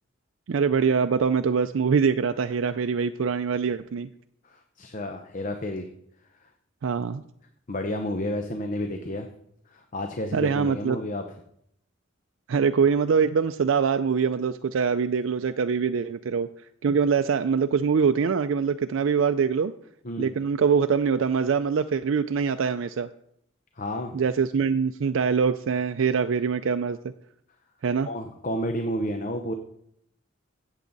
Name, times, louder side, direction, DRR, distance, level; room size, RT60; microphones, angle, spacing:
voice 1, 0.5-4.1 6.8-7.2 10.3-11.0 12.5-16.5 16.8-19.7 20.2-23.1 24.1-27.0 27.8-28.1, right 6 dB, 75° right, 9 dB, 0.4 m, -24 dB
voice 2, 4.4-5.9 6.4-6.5 7.7-9.3 9.7-11.2 20.0-20.3 23.8-24.2 28.1-29.5, left 1 dB, 40° left, 6 dB, 0.8 m, -31 dB
15.5 x 7.3 x 4.0 m, 0.72 s
head